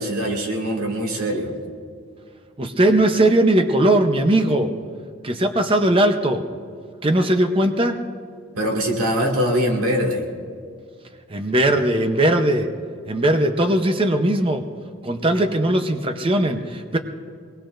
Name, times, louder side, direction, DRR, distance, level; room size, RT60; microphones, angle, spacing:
voice 1, 0.0-1.5 8.5-10.2, equal, 90° right, 1 dB, 2.1 m, -22 dB
voice 2, 2.6-4.7 5.2-6.5 7.0-8.0 11.3-12.7 13.1-14.7 15.0-17.0, right 1 dB, 25° right, 6 dB, 0.7 m, -19 dB
24.0 x 19.5 x 2.6 m, 2.1 s
head